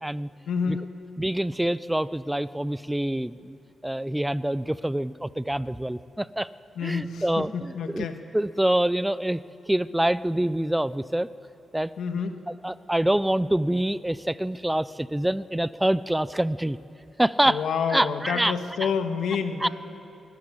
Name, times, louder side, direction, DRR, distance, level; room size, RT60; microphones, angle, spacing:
voice 1, 0.5-0.9 6.8-8.1 12.0-12.4 17.5-19.7, left 6 dB, 85° left, 7 dB, 1.5 m, -28 dB
voice 2, 1.2-3.6 3.8-6.5 6.8-8.1 8.3-11.3 11.7-11.9 12.6-16.8 17.2-18.5 18.8-18.9 19.6-19.7, right 1 dB, 5° right, 17 dB, 0.4 m, -26 dB
22.0 x 13.0 x 9.6 m, 2.8 s
wide cardioid pair, 145°, 0 cm